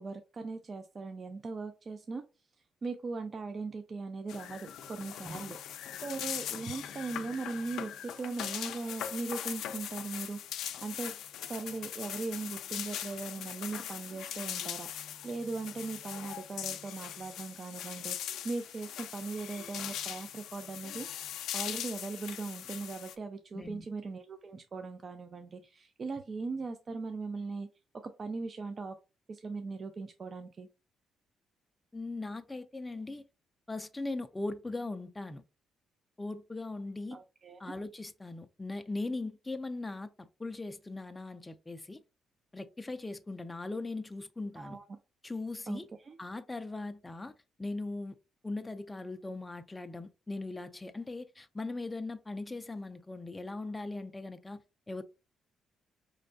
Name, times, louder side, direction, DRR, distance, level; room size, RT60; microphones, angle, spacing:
voice 1, 0.0-2.2 2.8-5.6 6.0-10.4 10.8-21.1 21.5-27.7 28.0-29.0 29.3-30.7 37.1-37.6 44.6-44.8 45.7-46.2, right 3 dB, 40° right, 0.5 m, -39 dB
sound 1, 4.3-23.2, left 10 dB, 80° left, 0.4 m, -40 dB
voice 2, 23.5-23.9 31.9-33.2 33.7-35.4 36.2-37.2 37.6-42.0 42.5-44.8 45.2-45.9 46.2-47.3 47.6-48.2 48.4-54.6 54.9-55.0, left 2 dB, 15° left, 0.4 m, -39 dB
4.4 x 3.2 x 2.6 m
cardioid pair, 90°, 0 cm